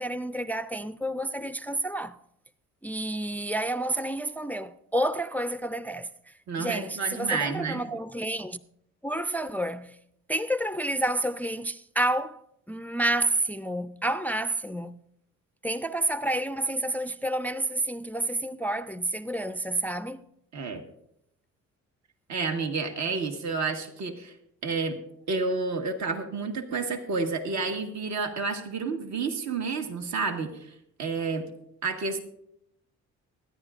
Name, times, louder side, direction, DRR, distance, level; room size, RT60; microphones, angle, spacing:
voice 1, 0.0-2.2 2.8-8.6 9.0-10.0 10.3-12.4 12.7-15.0 15.6-20.2, right 1 dB, 5° left, 0.3 m, -29 dB
voice 2, 6.5-7.8 20.5-20.8 22.3-24.3 24.6-25.0 25.3-31.5 31.8-32.2, right 4 dB, 65° right, 1.4 m, -30 dB
23.5 x 10.0 x 2.5 m
cardioid pair, 90°, 30 cm